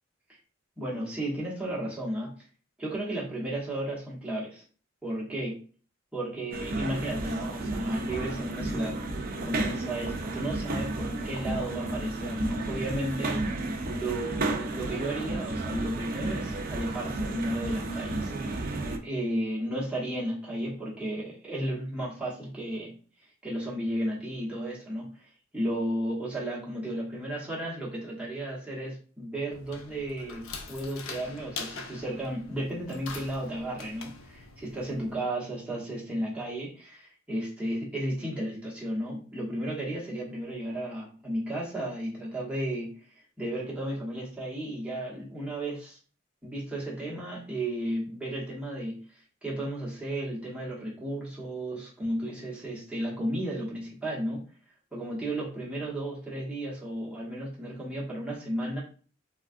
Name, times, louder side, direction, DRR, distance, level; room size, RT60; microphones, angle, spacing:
voice 1, 0.8-2.3 2.8-4.6 5.0-5.6 6.1-9.0 9.4-13.5 13.9-18.4 19.0-22.9 23.4-25.2 25.5-42.9 43.4-46.0 46.4-54.4 54.9-58.8, right 1 dB, 5° right, -5 dB, 0.9 m, -34 dB
sound 1, 6.5-19.0, right 2 dB, 45° right, 0.4 m, -32 dB
sound 2, 29.5-35.1, left 4 dB, 80° left, 0.5 m, -43 dB
3.4 x 2.3 x 2.4 m, 0.41 s
head